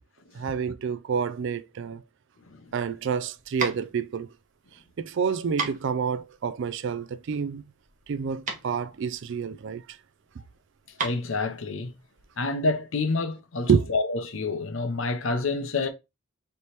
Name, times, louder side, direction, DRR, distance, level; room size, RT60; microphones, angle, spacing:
voice 1, 0.3-2.0 2.7-4.3 5.0-7.6 8.1-9.8 13.7-13.9, right 6 dB, 55° right, 0.4 m, -28 dB
sound 1, 2.7-12.5, right 4 dB, 35° right, 1.0 m, -37 dB
voice 2, 11.0-11.9 12.4-15.9, left 3 dB, 60° left, 0.7 m, -28 dB
3.4 x 3.0 x 4.1 m
head